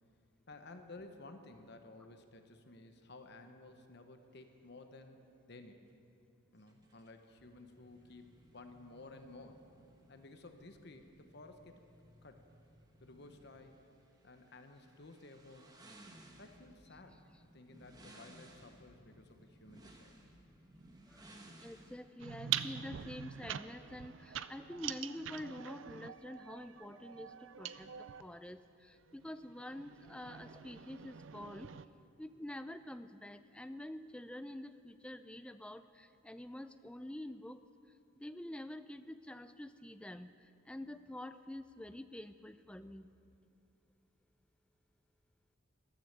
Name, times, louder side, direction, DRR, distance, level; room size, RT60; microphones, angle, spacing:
voice 1, 0.5-5.2 5.5-5.8 6.5-9.6 10.1-11.8 12.2-12.4 13.0-13.8 14.2-15.8 16.4-17.2 17.5-20.2, left 2 dB, 50° left, 6 dB, 1.0 m, -54 dB
sound 1, 6.6-22.0, right 1 dB, 20° right, 1.1 m, -60 dB
voice 2, 21.6-31.7 32.2-37.6 38.2-40.3 40.7-43.1, left 1 dB, 5° left, 11 dB, 0.3 m, -47 dB
sound 2, 22.2-28.3 29.1-31.9, right 10 dB, 65° right, 0.4 m, -44 dB
14.0 x 12.5 x 6.6 m, 2.5 s
head